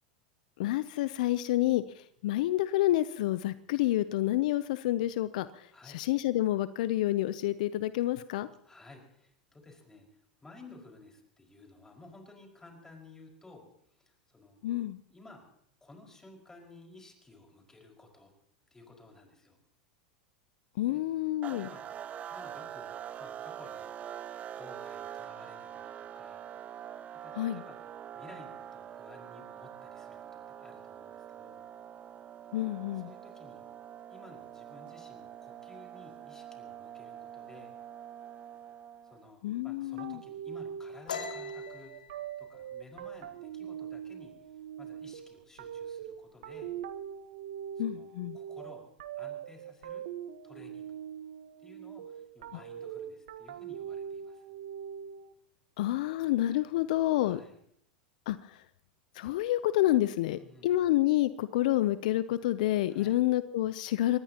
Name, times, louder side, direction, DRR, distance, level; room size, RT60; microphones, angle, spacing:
voice 1, 0.6-1.8 2.2-5.6 5.9-8.5 14.6-15.0 20.8-21.7 27.4-27.6 32.5-33.1 39.4-40.2 47.8-48.4 55.8-57.4 58.3-58.4 59.2-64.2, left 15 dB, 70° left, 15 dB, 0.6 m, -28 dB
voice 2, 5.7-6.0 8.6-14.6 15.1-15.5 15.8-18.3 18.7-19.6 20.9-21.0 21.5-21.9 22.3-22.9 23.2-23.9 24.6-26.4 26.9-27.8 28.1-31.6 32.9-33.6 34.1-37.7 39.0-41.9 42.4-44.3 44.8-46.7 47.8-48.9 49.2-50.0 50.4-51.0 51.6-54.5 57.2-57.6 60.3-60.7 62.9-63.2, left 2 dB, 10° left, 1 dB, 5.2 m, -55 dB
sound 1, 21.4-39.3, right 10 dB, 35° right, 0.7 m, -45 dB
sound 2, 40.0-55.3, right 9 dB, 75° right, 1.2 m, -42 dB
sound 3, 41.1-44.5 44.8-45.2 45.5-46.1 46.3-47.1, left 6 dB, 90° left, 1.6 m, -43 dB
24.0 x 19.5 x 2.9 m, 0.69 s
hypercardioid pair, 100°, 4 cm